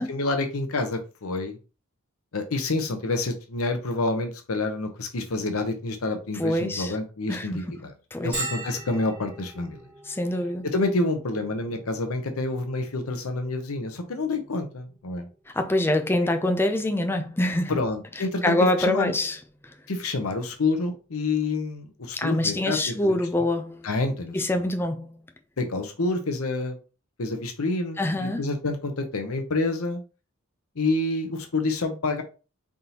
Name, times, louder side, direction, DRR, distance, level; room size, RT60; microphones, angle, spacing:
voice 1, 0.0-1.6 2.3-7.9 8.2-9.8 10.6-15.3 17.7-19.1 19.9-23.2 23.8-24.6 25.6-26.8 27.2-30.0 30.8-32.2, left 2 dB, 80° left, 0.8 m, -28 dB
voice 2, 6.4-6.9 7.3-7.6 8.1-8.4 10.1-10.7 15.5-17.7 18.4-19.4 22.1-23.9 24.3-25.2 28.0-28.4, left 1 dB, 10° left, 0.4 m, -25 dB
Bell, 8.3-23.8, right 2 dB, 20° right, 1.8 m, -44 dB
4.0 x 3.6 x 2.9 m
head